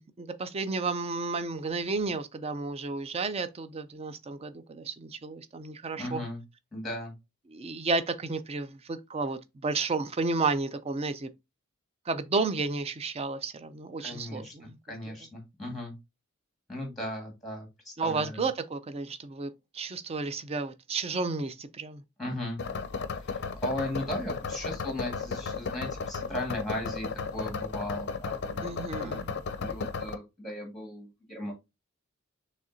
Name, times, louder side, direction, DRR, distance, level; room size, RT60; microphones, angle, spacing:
voice 1, 0.0-6.2 7.5-11.3 12.1-14.8 15.1-15.2 18.0-22.0 28.6-29.3, right 3 dB, 30° right, 0.4 m, -32 dB
voice 2, 6.0-6.4 6.7-7.1 14.0-14.5 14.9-15.9 16.7-18.5 22.2-22.6 23.2-28.6 28.9-29.2 29.6-31.5, left 1 dB, ahead, 1.6 m, -37 dB
sound 1, 22.6-30.2, left 4 dB, 50° left, 0.5 m, -34 dB
6.4 x 3.2 x 2.6 m
head